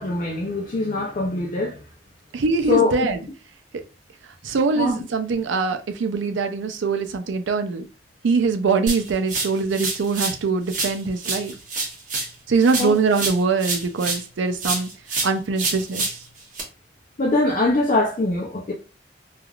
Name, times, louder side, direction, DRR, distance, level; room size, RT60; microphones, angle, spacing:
voice 1, 0.0-1.8 2.7-3.1 4.7-5.0 12.8-12.9 17.2-18.7, left 2 dB, 40° left, 0.4 m, -22 dB
voice 2, 2.3-3.2 3.7-3.8 4.4-7.9 8.2-11.5 12.5-14.9 15.2-16.2, right 4 dB, 75° right, 0.4 m, -23 dB
sound 1, 8.9-10.4 10.7-14.3 14.6-16.6, right 3 dB, 40° right, 0.9 m, -28 dB
3.3 x 2.4 x 2.3 m
head